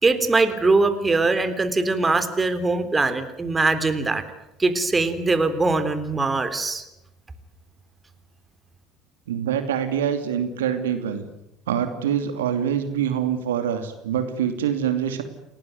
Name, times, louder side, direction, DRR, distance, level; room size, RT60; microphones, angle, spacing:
voice 1, 0.0-4.2 4.6-6.8, right 3 dB, 20° right, 10 dB, 3.5 m, -21 dB
voice 2, 9.3-11.3 11.7-15.2, right 9 dB, 75° right, 8 dB, 2.7 m, -25 dB
29.0 x 19.5 x 9.5 m, 0.88 s
figure-of-eight pair, 65°, 0 cm